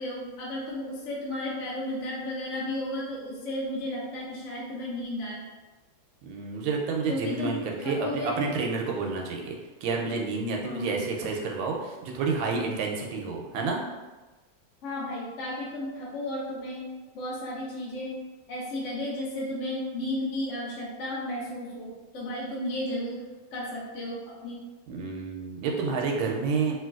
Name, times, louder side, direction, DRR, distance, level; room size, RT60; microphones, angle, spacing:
voice 1, 0.0-5.4 7.1-8.3 10.6-11.0 14.8-16.9 17.1-18.2 18.5-23.2 23.5-24.6, left 1 dB, 55° left, -6 dB, 0.8 m, -33 dB
voice 2, 6.2-9.5 9.8-13.8 24.9-26.8, right 4 dB, 90° right, 0 dB, 1.4 m, -29 dB
3.1 x 2.8 x 2.3 m, 1.2 s
omnidirectional pair, 2.1 m